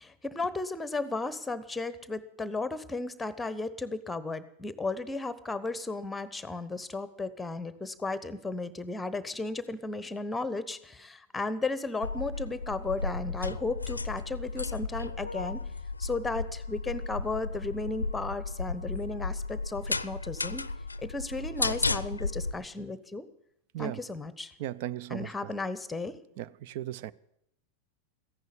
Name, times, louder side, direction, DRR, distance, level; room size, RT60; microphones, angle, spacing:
voice 1, 0.0-15.6 16.0-20.6 21.0-23.3 23.8-24.5 25.1-26.2, left 3 dB, 10° left, 1.0 m, -34 dB
sound 1, 12.0-22.5, left 3 dB, 80° left, 0.5 m, -34 dB
voice 2, 24.6-25.5 26.4-27.1, right 12 dB, 50° right, 0.5 m, -37 dB
15.0 x 10.5 x 8.3 m
figure-of-eight pair, 90°, 0 cm